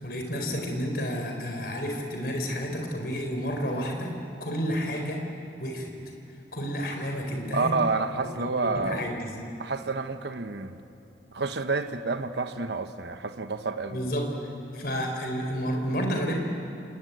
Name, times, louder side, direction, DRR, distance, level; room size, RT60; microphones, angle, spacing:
voice 1, 0.0-4.1 4.4-5.3 5.6-5.9 6.5-7.8 8.4-9.3 13.9-14.3 14.7-16.3, equal, 55° left, 3 dB, 4.3 m, -30 dB
voice 2, 7.5-9.0 9.6-10.8 11.3-14.1, right 3 dB, 70° right, 8 dB, 1.1 m, -29 dB
29.5 x 20.5 x 9.3 m, 2.7 s
head